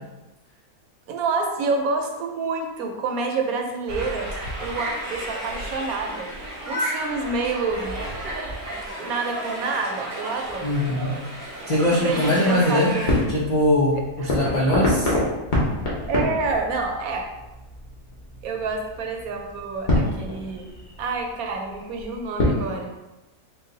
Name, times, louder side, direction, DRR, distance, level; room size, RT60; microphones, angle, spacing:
voice 1, 1.1-4.3 4.6-8.0 9.0-10.7 11.9-13.1 13.9-14.3 16.1-17.3 18.4-20.7 21.0-22.9, right 4 dB, 75° right, 2 dB, 1.1 m, -28 dB
sound 1, 3.9-13.2, right 1 dB, 40° right, 0.8 m, -32 dB
sound 2, 10.4-22.7, left 1 dB, 40° left, 1.0 m, -28 dB
voice 2, 10.6-11.1 11.7-12.9 13.3-15.1, left 1 dB, 80° left, -4 dB, 0.3 m, -21 dB
3.9 x 2.3 x 3.7 m, 1.1 s
omnidirectional pair, 1.5 m